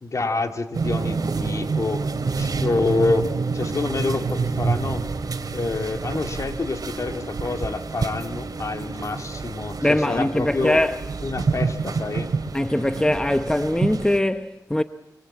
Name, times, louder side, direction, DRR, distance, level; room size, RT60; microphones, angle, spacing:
voice 1, 0.0-2.1 2.4-3.3 3.5-5.1 5.5-10.8 11.2-12.3, left 3 dB, 50° left, 2.3 m, -27 dB
sound 1, 0.7-14.2, right 4 dB, 65° right, 2.8 m, -28 dB
voice 2, 9.8-11.0 12.5-14.8, left 1 dB, 10° left, 0.9 m, -22 dB
27.0 x 24.0 x 8.6 m
wide cardioid pair, 95°, 7 cm